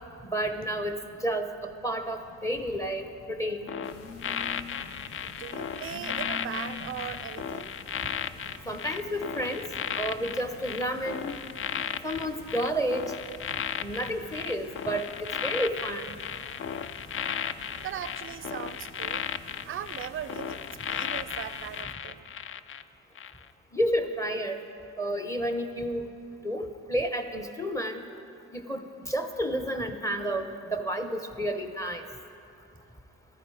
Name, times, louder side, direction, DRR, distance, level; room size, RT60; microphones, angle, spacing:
voice 1, 0.2-3.7 8.7-9.6 10.0-11.3 12.0-13.0 13.8-16.2 23.7-24.6 25.0-26.1 26.4-28.0 28.5-32.1, equal, 10° left, 7 dB, 0.8 m, -31 dB
Telephone, 0.6-8.7, left 4 dB, 60° left, 1.3 m, -48 dB
sound 1, 3.7-22.8 23.2-23.4, left 8 dB, 45° left, 0.4 m, -35 dB
sound 2, 3.8-21.8, left 2 dB, 85° left, 1.6 m, -50 dB
voice 2, 5.2-7.7 17.8-19.3 19.6-22.3, right 10 dB, 45° right, 15 dB, 0.5 m, -39 dB
13.5 x 11.0 x 4.8 m, 2.6 s
cardioid pair, 90°, 30 cm